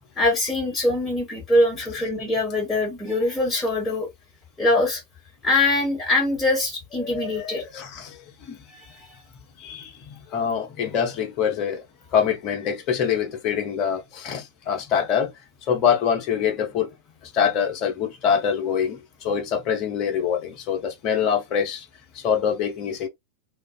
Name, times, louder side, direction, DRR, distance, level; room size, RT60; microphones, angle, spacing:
voice 1, 0.1-4.1 4.6-5.0 5.4-7.6, left 2 dB, 15° left, 1.4 m, -23 dB
voice 2, 7.0-8.6 9.6-11.8 12.1-15.3 15.7-16.9 17.2-21.9 22.1-23.1, left 7 dB, 40° left, 0.8 m, -25 dB
2.4 x 2.3 x 2.4 m
figure-of-eight pair, 90°, 0 cm